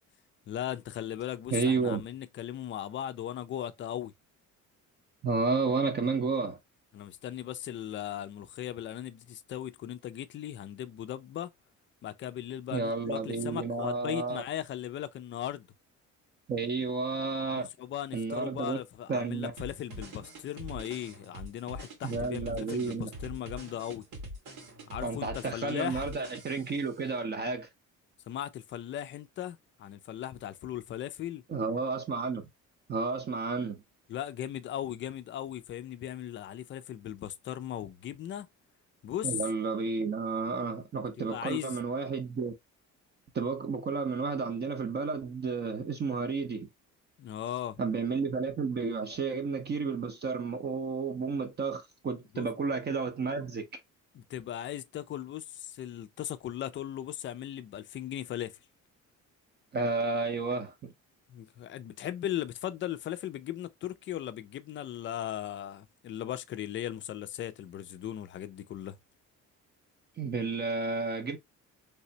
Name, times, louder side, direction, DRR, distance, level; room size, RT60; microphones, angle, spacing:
voice 1, 0.5-4.1 6.9-11.5 12.0-15.7 17.5-24.0 24.9-26.0 28.3-31.4 34.1-38.5 39.0-39.3 41.2-41.8 47.2-47.8 52.3-52.5 54.1-58.6 61.3-69.0, left 11 dB, 40° left, 0.4 m, -38 dB
voice 2, 1.5-2.0 5.2-6.6 12.7-14.4 16.5-17.7 18.1-18.8 19.1-19.5 22.0-23.1 25.0-27.7 31.5-32.5 32.9-33.8 39.2-42.5 43.3-46.7 47.8-53.7 59.7-60.9 70.2-71.4, right 4 dB, 35° right, 0.7 m, -31 dB
sound 1, 19.6-26.9, equal, 80° right, 1.9 m, -44 dB
3.3 x 3.1 x 2.7 m
cardioid pair, 165°, 30 cm